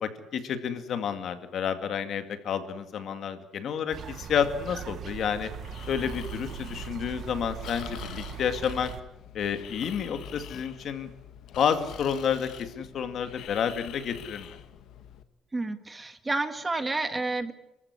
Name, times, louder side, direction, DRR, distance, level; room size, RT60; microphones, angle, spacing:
voice 1, 0.0-5.5 5.9-8.9 9.3-11.1 11.6-14.6, left 7 dB, 55° left, 9 dB, 2.2 m, -30 dB
sound 1, 3.9-9.0, right 9 dB, 50° right, 1.5 m, -40 dB
Breathing, 5.5-15.2, left 10 dB, 75° left, 1.7 m, -45 dB
voice 2, 15.5-17.5, right 2 dB, 15° right, 9 dB, 1.8 m, -30 dB
29.0 x 14.5 x 9.8 m, 0.91 s
cardioid pair, 140°, 0 cm